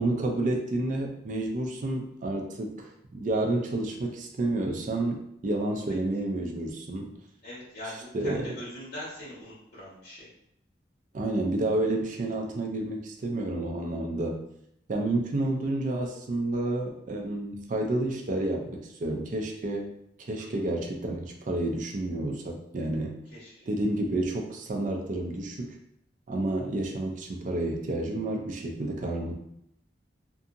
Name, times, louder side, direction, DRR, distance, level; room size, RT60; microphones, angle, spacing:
voice 1, 0.0-7.1 8.1-8.5 11.1-14.5 14.9-19.9 20.2-23.2 23.7-25.7 26.3-29.3, right 2 dB, 45° right, 1 dB, 0.4 m, -30 dB
voice 2, 7.4-10.3 15.4-15.5 20.4-20.5 23.3-23.5, left 1 dB, 60° left, -8 dB, 1.1 m, -42 dB
2.6 x 2.6 x 2.5 m, 0.76 s
head